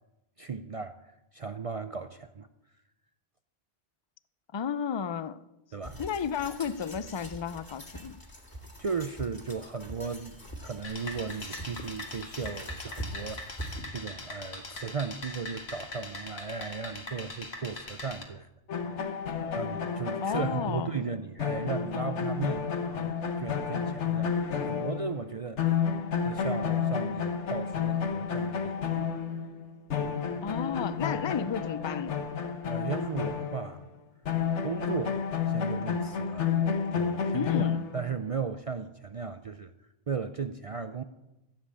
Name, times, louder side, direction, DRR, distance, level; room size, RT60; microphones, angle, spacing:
voice 1, 0.4-2.5 5.7-6.0 8.8-18.5 18.9-19.2 19.6-25.8 26.2-28.8 32.7-33.8 34.6-36.5 36.9-37.7 37.9-39.7 40.1-41.0, right 5 dB, 50° right, 0.4 m, -36 dB
voice 2, 4.5-5.4 6.0-8.2 20.2-21.0 30.4-32.2 37.3-37.8, left 7 dB, 40° left, 0.4 m, -33 dB
sound 1, 5.8-13.8, equal, 20° left, 2.1 m, -43 dB
sound 2, 10.8-18.2, left 2 dB, 60° left, 2.1 m, -42 dB
sound 3, 18.7-25.3 25.6-33.8 34.2-38.2, left 7 dB, 80° left, 1.4 m, -31 dB
14.5 x 7.6 x 8.4 m
omnidirectional pair, 1.2 m